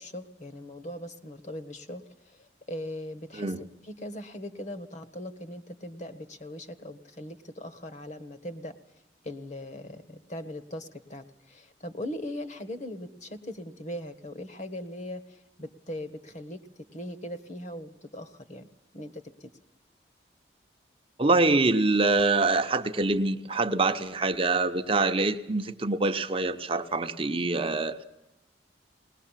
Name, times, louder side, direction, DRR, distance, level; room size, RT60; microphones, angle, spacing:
voice 1, 0.0-2.0 2.3-2.4 2.7-3.5 3.8-8.7 9.2-16.6 16.9-18.7 18.9-19.5, left 1 dB, 40° left, 10 dB, 1.5 m, -40 dB
voice 2, 21.2-28.0, right 3 dB, 30° right, 7 dB, 0.8 m, -25 dB
20.0 x 20.0 x 7.4 m, 0.90 s
head